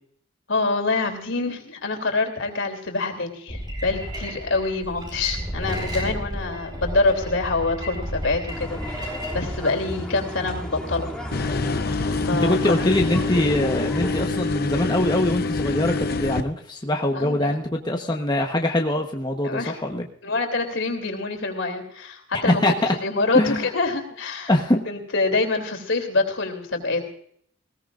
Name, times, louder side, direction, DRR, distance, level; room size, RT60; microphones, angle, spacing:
voice 1, 0.5-11.7 12.3-12.7 17.1-17.6 19.4-19.7 20.2-22.6 23.0-24.5 24.8-27.1, left 3 dB, 75° left, 4 dB, 3.3 m, -26 dB
sound 1, 3.5-9.6, equal, 25° right, 4.9 m, -32 dB
sound 2, 8.5-14.3, equal, 5° left, 2.8 m, -33 dB
sound 3, 11.3-16.4, left 3 dB, 50° left, 0.8 m, -26 dB
voice 2, 12.3-20.1 22.3-22.9 23.3-23.7 24.5-24.8, left 1 dB, 20° left, 2 dB, 1.1 m, -23 dB
20.0 x 17.5 x 2.5 m, 0.64 s
head